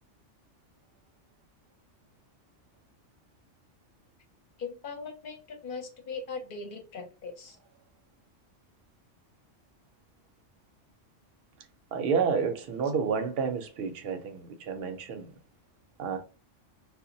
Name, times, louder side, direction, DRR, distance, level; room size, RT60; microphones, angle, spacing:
voice 1, 4.6-7.6, left 5 dB, 50° left, 0.7 m, -40 dB
voice 2, 11.9-15.4 16.0-16.2, right 6 dB, 60° right, 0.7 m, -30 dB
2.1 x 2.1 x 3.8 m
omnidirectional pair, 1.3 m